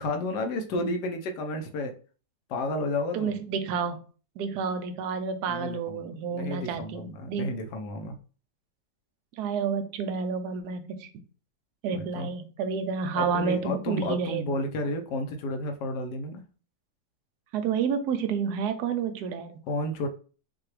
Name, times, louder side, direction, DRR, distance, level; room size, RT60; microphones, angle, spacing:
voice 1, 0.0-1.9 2.5-3.4 5.5-6.0 6.3-8.1 11.9-12.3 13.2-16.4 19.7-20.1, left 2 dB, 75° left, 5 dB, 1.3 m, -31 dB
voice 2, 3.1-4.0 4.4-7.5 9.4-11.1 11.8-14.6 17.5-19.6, right 6 dB, 70° right, 8 dB, 1.1 m, -30 dB
5.8 x 2.3 x 3.2 m, 0.38 s
omnidirectional pair, 1.9 m